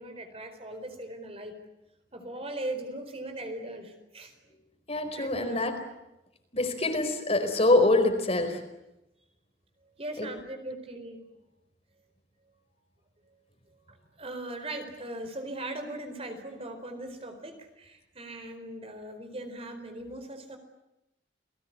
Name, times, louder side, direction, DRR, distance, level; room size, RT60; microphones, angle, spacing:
voice 1, 0.0-1.6 2.1-4.3 5.1-5.6 6.8-7.0 10.0-11.2 13.9-20.6, right 1 dB, 35° right, 7 dB, 4.4 m, -39 dB
voice 2, 4.9-5.8 6.5-8.6 10.2-10.3, left 2 dB, 35° left, 6 dB, 4.6 m, -25 dB
30.0 x 20.0 x 9.7 m, 0.91 s
head